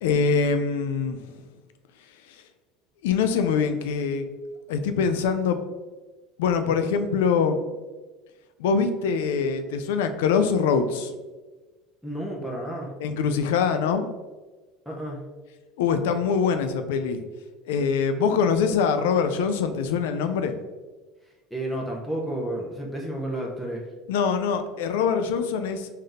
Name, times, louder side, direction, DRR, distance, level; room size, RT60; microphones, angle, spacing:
voice 1, 0.0-1.3 3.0-4.3 4.7-5.7 6.4-7.6 8.6-11.1 13.0-14.1 15.8-17.2 17.7-20.6 24.1-25.9, left 6 dB, 85° left, 9 dB, 0.4 m, -23 dB
voice 2, 12.0-12.9 14.9-15.2 21.5-23.9, right 1 dB, ahead, -3 dB, 0.8 m, -31 dB
3.3 x 2.7 x 3.9 m, 1.3 s
supercardioid pair, 105°, 0 cm